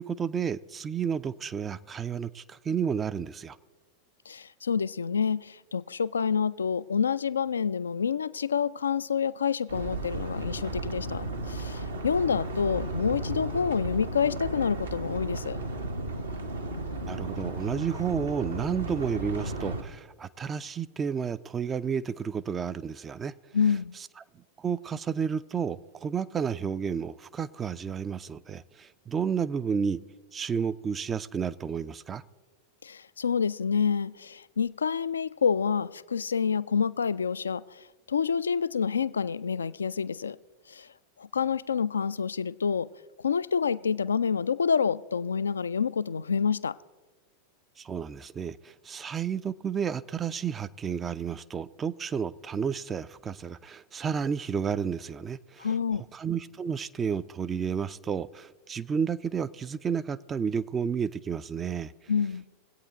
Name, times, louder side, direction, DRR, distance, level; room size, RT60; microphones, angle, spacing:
voice 1, 0.0-3.6 17.1-23.3 24.6-30.0 30.3-32.2 47.8-55.7 56.1-62.1, right 7 dB, 20° right, 14 dB, 0.4 m, -31 dB
voice 2, 4.3-15.6 23.5-23.9 32.8-40.4 40.7-40.9 41.2-42.9 43.2-46.8 55.6-56.0 62.1-62.4, left 6 dB, 70° left, 18 dB, 0.3 m, -28 dB
sound 1, 9.7-19.8, right 2 dB, 75° right, 1.3 m, -34 dB
21.5 x 8.5 x 4.0 m, 1.3 s
figure-of-eight pair, 90°, 0 cm